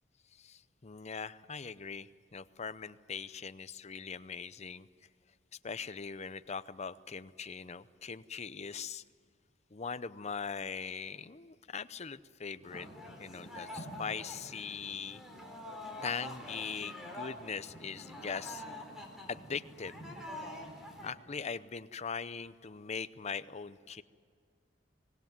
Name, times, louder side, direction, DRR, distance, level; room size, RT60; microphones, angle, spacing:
voice 1, 0.4-4.9 5.6-9.0 9.7-12.9 13.2-15.2 16.0-18.6 19.3-19.9 21.0-24.0, left 5 dB, 35° left, 14 dB, 0.7 m, -41 dB
sound 1, 12.6-21.1, left 1 dB, ahead, 3.8 m, -46 dB
25.0 x 19.0 x 9.4 m, 2.2 s
head